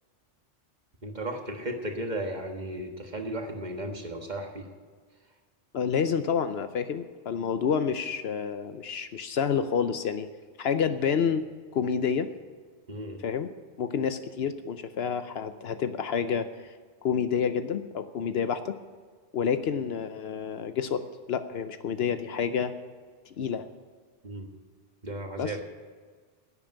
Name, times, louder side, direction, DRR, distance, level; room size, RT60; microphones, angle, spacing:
voice 1, 1.0-4.7 12.9-13.2 24.2-24.5 25.0-25.6, right 1 dB, 40° right, 3 dB, 1.5 m, -35 dB
voice 2, 5.7-10.3 10.6-11.5 11.7-12.3 13.2-13.5 13.8-16.5 17.0-18.8 19.3-22.7 23.4-23.7 25.4-25.5, left 7 dB, 65° left, 11 dB, 0.9 m, -28 dB
11.0 x 8.7 x 9.0 m, 1.5 s
omnidirectional pair, 1.2 m